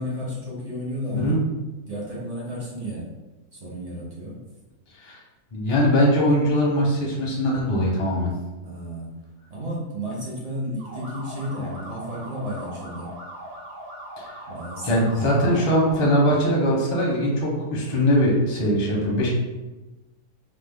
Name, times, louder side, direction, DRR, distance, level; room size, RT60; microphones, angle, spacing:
voice 1, 0.0-1.3 1.8-3.1 3.5-4.4 8.6-9.2 9.5-13.1 14.5-15.4, equal, 70° right, -5 dB, 0.3 m, -32 dB
voice 2, 5.5-8.3 14.2-14.3 14.8-19.3, equal, 40° left, -3 dB, 0.4 m, -21 dB
sound 1, 10.8-16.2, right 1 dB, 90° right, 1.3 m, -40 dB
3.0 x 2.0 x 3.4 m, 1.1 s
omnidirectional pair, 1.6 m